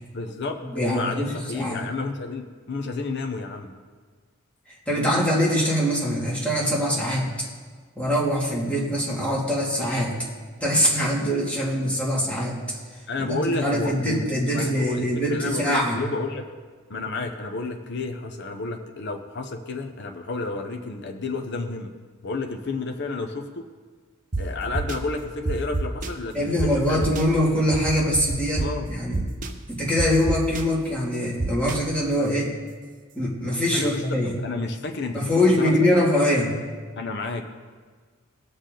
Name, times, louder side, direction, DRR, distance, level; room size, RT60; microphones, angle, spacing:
voice 1, 0.1-3.7 13.1-14.3 14.5-16.5 16.9-21.9 22.2-23.6 24.4-27.1 28.6-28.9 33.7-35.8 37.0-37.4, left 3 dB, 55° left, 4 dB, 0.8 m, -31 dB
voice 2, 0.7-1.8 4.9-7.5 8.0-10.1 10.6-12.8 13.2-16.0 26.3-29.3 29.7-32.5 33.1-34.3 35.1-36.6, equal, 5° left, -6 dB, 2.5 m, -23 dB
sound 1, 24.3-24.4 24.7-25.0 25.5-26.1 26.6-26.7 27.0-27.2 27.7-28.7 29.1-29.5 30.0-30.6 31.4-31.7, right 3 dB, 40° right, 0.8 m, -26 dB
19.0 x 6.5 x 3.9 m, 1.5 s
head